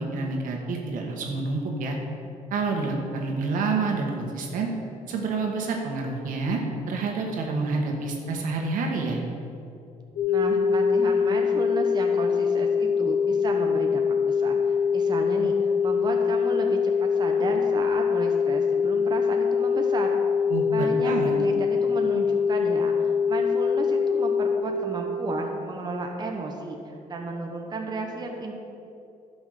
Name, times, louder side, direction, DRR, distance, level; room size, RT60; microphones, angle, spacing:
voice 1, 0.0-2.0 2.5-4.7 5.1-6.6 6.9-9.2 20.5-21.4, right 3 dB, 75° right, 1 dB, 1.8 m, -28 dB
sound 1, 10.2-24.6, left 6 dB, 70° left, 1.6 m, -23 dB
voice 2, 10.3-20.2 20.7-28.5, right 3 dB, 30° right, 1 dB, 1.2 m, -33 dB
11.0 x 6.3 x 6.6 m, 2.6 s
cardioid pair, 90°, 14 cm